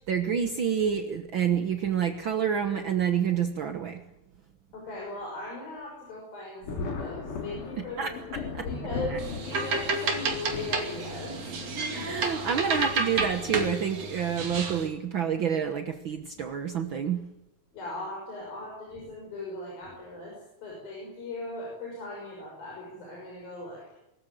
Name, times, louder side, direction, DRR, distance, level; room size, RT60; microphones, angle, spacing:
voice 1, 0.1-4.0 7.8-8.1 8.6-8.7 9.1-9.2 11.9-17.2, right 8 dB, 65° right, 7 dB, 1.2 m, -28 dB
voice 2, 4.7-12.0 17.7-23.8, left 2 dB, 85° left, -2 dB, 7.9 m, -39 dB
Thunder, 6.6-13.7 14.7-14.8 16.3-16.5 16.9-17.0 18.9-19.1 19.8-20.2, left 4 dB, 65° left, 4.3 m, -39 dB
sound 1, 9.2-14.9, right 3 dB, 50° right, 3.5 m, -31 dB
23.5 x 14.5 x 9.3 m, 0.88 s
omnidirectional pair, 4.0 m